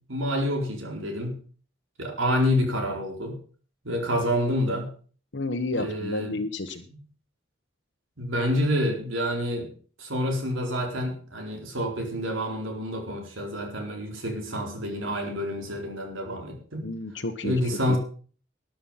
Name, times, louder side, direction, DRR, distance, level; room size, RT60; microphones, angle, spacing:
voice 1, 0.1-1.3 2.0-3.4 3.8-4.9 5.8-6.4 8.2-9.7 10.0-16.9 17.4-18.0, equal, 85° right, 3 dB, 4.2 m, -28 dB
voice 2, 5.3-6.8 16.8-17.6 17.9-18.0, left 2 dB, 65° left, 5 dB, 1.1 m, -31 dB
13.0 x 10.5 x 5.7 m, 0.42 s
head